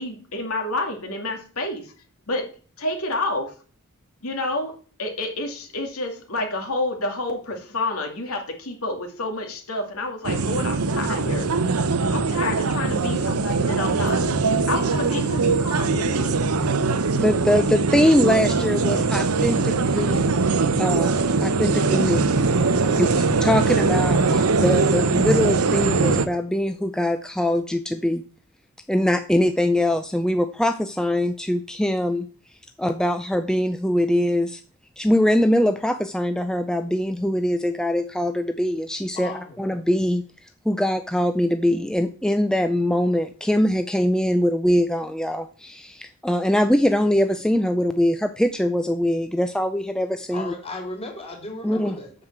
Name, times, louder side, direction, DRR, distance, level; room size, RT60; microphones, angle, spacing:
voice 1, 0.0-1.9 2.3-2.5 2.8-3.6 4.2-11.5 12.1-14.2 14.7-16.4, left 2 dB, 70° left, 3 dB, 2.3 m, -29 dB
sound 1, 10.2-26.3, right 4 dB, 75° right, 0.9 m, -21 dB
voice 2, 17.1-20.2 20.8-22.2 23.0-23.1 23.4-28.2 28.9-32.3 32.8-34.6 35.0-39.3 39.6-50.5 51.6-52.0, left 1 dB, 5° left, 8 dB, 0.4 m, -22 dB
voice 3, 22.8-23.2 39.2-39.6 50.3-52.1, left 2 dB, 25° left, 2 dB, 3.3 m, -36 dB
7.8 x 6.5 x 7.3 m, 0.41 s
head